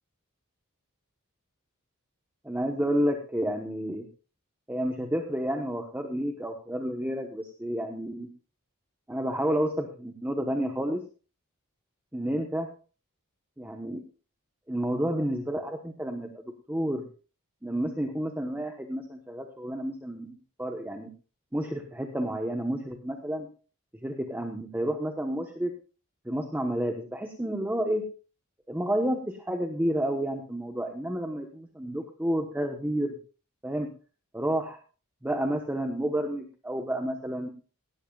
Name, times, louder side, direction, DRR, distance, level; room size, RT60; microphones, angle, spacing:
voice 1, 2.4-4.1 4.7-8.3 9.1-11.0 12.1-12.7 13.6-14.0 14.7-17.1 17.6-21.1 21.5-23.5 23.9-25.7 26.2-28.0 28.7-33.2 33.6-33.9 34.3-34.8 35.2-37.5, right 1 dB, 10° right, 4 dB, 1.1 m, -30 dB
17.5 x 13.0 x 2.4 m, 0.35 s
head